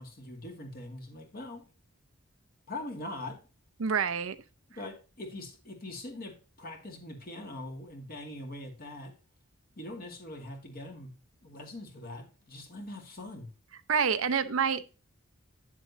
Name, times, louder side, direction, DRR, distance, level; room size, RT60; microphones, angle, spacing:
voice 1, 0.0-1.7 2.7-3.4 4.8-9.1 9.8-11.2 11.4-13.5, left 1 dB, 45° left, 2.2 m, -42 dB
voice 2, 3.8-4.4 13.9-15.0, right 6 dB, 65° right, 0.6 m, -27 dB
9.6 x 7.2 x 2.7 m
head